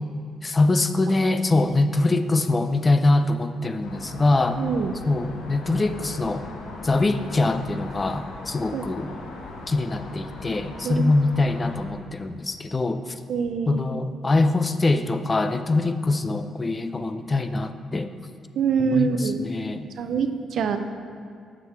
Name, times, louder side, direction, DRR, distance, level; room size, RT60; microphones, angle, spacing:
voice 1, 0.4-4.6 5.1-6.5 6.8-9.1 9.7-13.0 13.7-18.1 18.8-19.9, left 2 dB, 25° left, 10 dB, 0.5 m, -23 dB
sound 1, 3.8-11.9, left 3 dB, 80° left, 1.1 m, -39 dB
voice 2, 4.6-4.9 8.7-8.9 10.8-11.2 13.3-13.8 18.6-19.4 20.0-20.8, right 6 dB, 70° right, 7 dB, 0.6 m, -25 dB
7.5 x 6.1 x 5.8 m, 2.3 s
cardioid pair, 90°, 0 cm